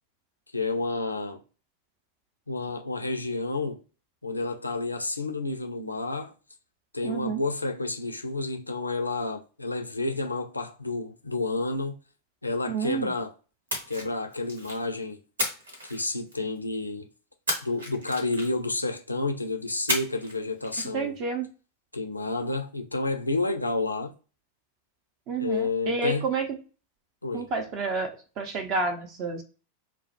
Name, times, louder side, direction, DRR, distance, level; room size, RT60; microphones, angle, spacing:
voice 1, 0.5-1.4 2.5-3.8 4.2-6.3 6.9-12.0 12.4-13.3 13.9-15.2 15.9-17.1 17.6-21.1 21.9-24.1 25.4-26.3 27.2-27.5, left 2 dB, 85° left, 0.4 m, -30 dB
voice 2, 7.0-7.4 12.7-13.1 20.9-21.5 25.3-26.6 27.3-29.4, right 4 dB, 40° right, 0.5 m, -30 dB
Splash splatter, 13.7-14.9 15.4-16.6 17.5-18.7 19.9-20.4 20.6-20.9, equal, 70° right, 0.9 m, -32 dB
2.1 x 2.1 x 2.8 m
figure-of-eight pair, 90°, 0 cm